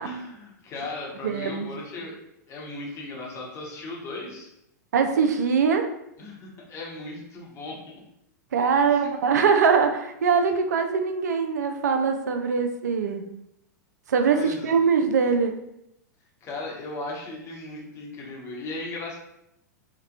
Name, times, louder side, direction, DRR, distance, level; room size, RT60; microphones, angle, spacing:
voice 1, 0.0-2.1 2.5-4.5 6.2-8.0 8.9-9.1 14.3-14.7 16.4-19.2, left 2 dB, 30° left, -3 dB, 0.9 m, -37 dB
voice 2, 1.2-1.7 4.9-5.9 8.5-13.2 14.1-15.6, right 5 dB, 70° right, 6 dB, 0.3 m, -22 dB
2.9 x 2.1 x 2.4 m, 0.82 s
figure-of-eight pair, 100°, 9 cm